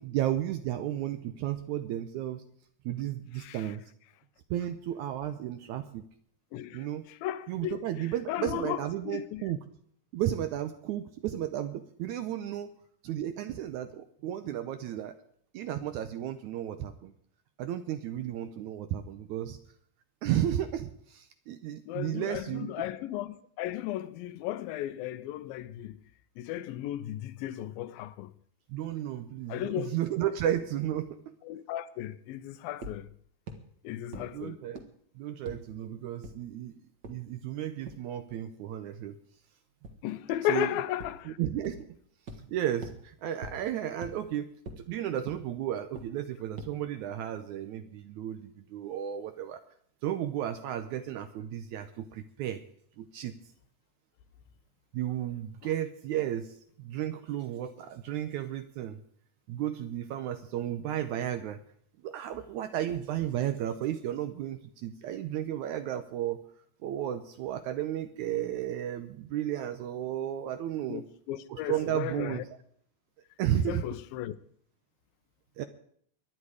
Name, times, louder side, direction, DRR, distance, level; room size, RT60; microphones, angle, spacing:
voice 1, 0.0-2.4 2.8-3.8 4.5-6.0 6.7-7.1 7.5-9.6 10.1-12.7 13.0-15.1 15.5-17.1 17.6-19.6 20.2-22.8 28.7-31.3 34.1-34.8 35.1-36.7 37.1-39.1 40.5-40.7 41.2-41.9 42.5-49.6 50.0-52.6 53.0-53.3 54.9-59.0 59.5-61.6 62.0-66.4 66.8-71.1 71.5-72.5 73.4-73.9 75.6-75.7, right 11 dB, 75° right, 1.8 m, -33 dB
voice 2, 6.5-7.8 8.3-9.4 21.9-26.0 26.4-28.3 29.5-30.0 31.4-33.1 33.8-34.6 40.0-41.4 70.9-72.4 73.7-74.3, left 13 dB, 85° left, 2.5 m, -35 dB
sound 1, 32.8-32.9 33.5-33.6 34.1-34.2 34.7-34.8 35.5-35.6 36.2-36.3 37.0-37.1 37.9-38.0 39.8-39.9 41.0-41.1 41.6-41.7 42.3-42.4 42.8-42.9 43.4-43.5 44.0-44.1 44.7-44.8 45.3-45.4 46.0-46.1 46.6-46.7, right 1 dB, 50° right, 1.2 m, -40 dB
23.0 x 10.0 x 4.9 m
omnidirectional pair, 4.0 m